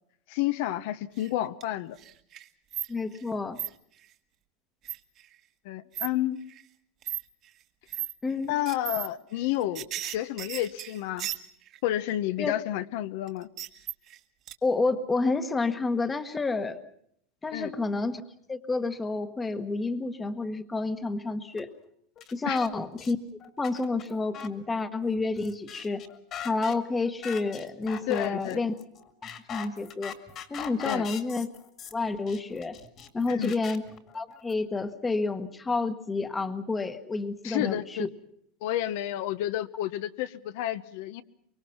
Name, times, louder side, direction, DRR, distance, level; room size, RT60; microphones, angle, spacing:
voice 1, 0.3-2.0 5.6-6.4 8.5-11.3 11.8-13.5 17.5-17.7 22.5-22.6 28.1-28.6 30.8-31.0 33.3-33.5 37.4-38.1 38.6-41.2, left 13 dB, 60° left, 12 dB, 0.9 m, -30 dB
sound 1, 1.2-1.7 2.0-3.3 3.6-3.7 4.8-5.2 5.9-6.1 6.5-6.6 7.0-7.2 7.9-8.1 8.7-9.1 9.4-11.8 13.3-14.2 14.5-14.6, right 12 dB, 35° right, 1.4 m, -35 dB
voice 2, 2.9-3.6 8.2-8.5 12.4-12.5 14.6-16.8 17.4-18.2 18.5-21.7 22.3-23.2 23.6-26.0 26.4-28.7 29.5-30.1 30.5-31.5 31.9-32.8 33.1-33.8 34.1-38.1, left 3 dB, 10° left, 11 dB, 1.2 m, -29 dB
sound 2, 21.6-21.7 22.2-22.7 23.0-23.1 23.4-34.5, left 8 dB, 30° left, 2.1 m, -42 dB
24.0 x 23.5 x 5.8 m, 0.67 s
supercardioid pair, 165°, 0 cm